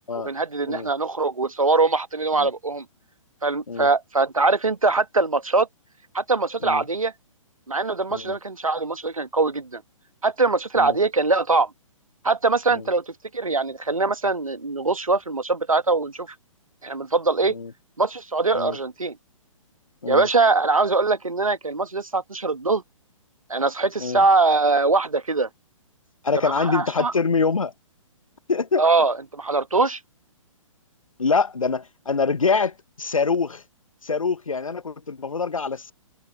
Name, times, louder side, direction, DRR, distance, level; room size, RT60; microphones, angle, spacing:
voice 1, 0.2-2.8 3.4-5.7 6.1-7.1 7.7-9.8 10.2-11.7 12.2-16.3 16.8-17.6 18.0-19.2 20.1-22.8 23.5-25.5 26.4-27.1 28.8-30.0, right 3 dB, 80° right, 1.4 m, -22 dB
voice 2, 26.2-27.7 28.5-28.8 31.2-33.6 34.0-35.9, left 4 dB, 75° left, 1.0 m, -25 dB
open air
figure-of-eight pair, 125°, 17 cm